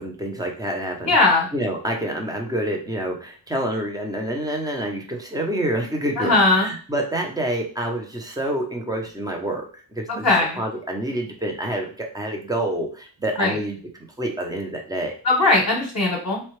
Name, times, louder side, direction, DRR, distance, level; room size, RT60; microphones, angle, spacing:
voice 1, 0.0-10.3 10.6-13.8 14.2-15.2, right 1 dB, 10° right, 1 dB, 0.7 m, -27 dB
voice 2, 1.0-1.5 6.2-6.7 10.2-10.5 13.4-13.5 15.2-16.4, left 2 dB, 45° left, -1 dB, 1.0 m, -18 dB
4.4 x 2.3 x 3.2 m, 0.40 s
wide cardioid pair, 105°, 47 cm